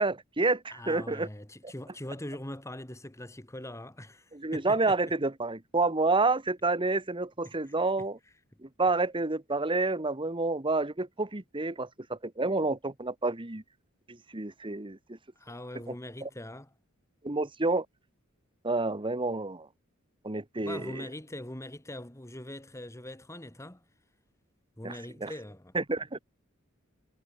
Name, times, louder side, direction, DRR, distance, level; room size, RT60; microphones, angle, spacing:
voice 1, 0.0-1.3 1.6-1.7 4.3-8.2 8.6-13.6 14.1-15.2 16.2-16.3 17.2-17.8 18.6-19.7 20.2-21.1 24.8-25.3 25.7-26.2, right 3 dB, 25° right, 1.3 m, -29 dB
voice 2, 0.7-5.0 7.4-7.7 15.4-16.7 20.6-23.8 24.8-25.7, left 1 dB, 15° left, 2.2 m, -42 dB
head